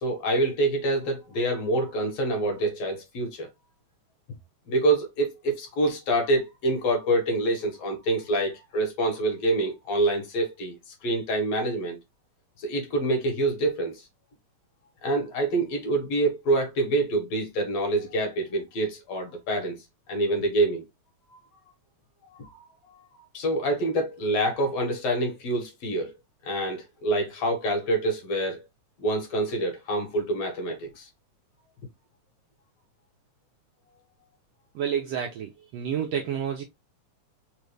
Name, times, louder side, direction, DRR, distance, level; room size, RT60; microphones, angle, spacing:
voice 1, 0.0-3.5 4.7-10.8 11.0-12.0 12.6-14.1 15.0-19.8 20.1-20.8 22.3-22.7 23.3-26.1 26.4-28.6 29.0-31.1, right 2 dB, 65° left, 2.1 m, -26 dB
voice 2, 34.7-36.6, right 8 dB, 75° right, 1.5 m, -29 dB
4.8 x 2.4 x 3.2 m
omnidirectional pair, 3.5 m